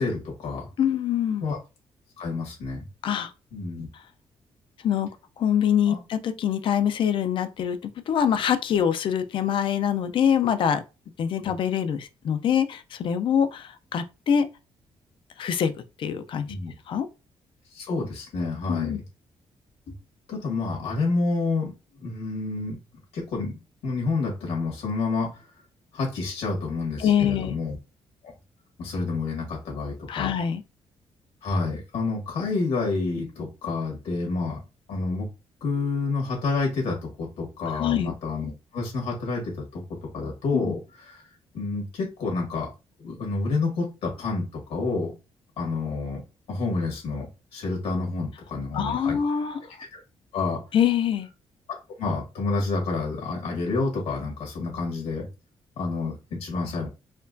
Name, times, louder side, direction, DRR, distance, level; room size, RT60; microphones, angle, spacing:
voice 1, 0.0-0.7 1.4-1.6 2.2-2.9 3.5-3.9 5.9-6.0 11.4-11.5 16.5-16.7 17.7-19.0 20.3-21.7 22.0-22.8 23.1-25.4 25.9-27.8 28.8-30.3 31.4-34.6 34.9-35.3 35.6-40.8 41.1-41.2 41.5-42.7 43.0-45.1 45.6-46.2 46.5-49.2 49.9-50.0 50.3-50.6 52.0-55.3 55.8-56.9, left 3 dB, 80° left, 1.7 m, -29 dB
voice 2, 0.8-1.4 3.0-3.3 4.8-5.1 5.4-10.8 11.2-14.5 15.4-15.7 16.0-16.5 16.9-17.1 18.7-19.0 27.0-27.5 30.1-30.6 37.7-38.1 40.5-40.7 48.7-49.6 50.7-51.3, left 8 dB, 55° left, 0.4 m, -24 dB
4.3 x 2.3 x 2.5 m
cardioid pair, 155°, 10 cm